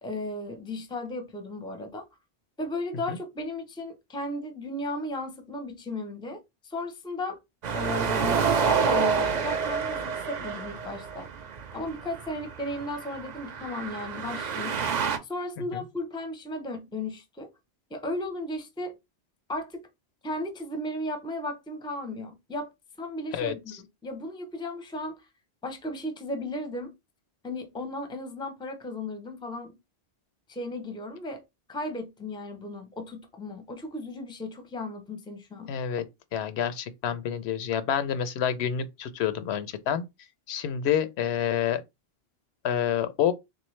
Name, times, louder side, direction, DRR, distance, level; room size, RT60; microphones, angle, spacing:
voice 1, 0.0-2.1 2.6-7.4 7.7-11.3 11.7-14.8 15.2-17.5 17.9-19.0 19.5-19.8 20.2-22.7 23.0-25.3 25.6-26.9 27.4-29.8 30.5-31.4 31.7-35.7, left 1 dB, 5° left, 0.4 m, -35 dB
sound 1, 7.6-15.2, right 6 dB, 50° right, 0.6 m, -28 dB
voice 2, 35.7-36.0 36.3-40.0 40.5-41.8 42.6-43.3, left 9 dB, 90° left, 0.8 m, -28 dB
3.5 x 2.7 x 3.1 m
omnidirectional pair, 1.1 m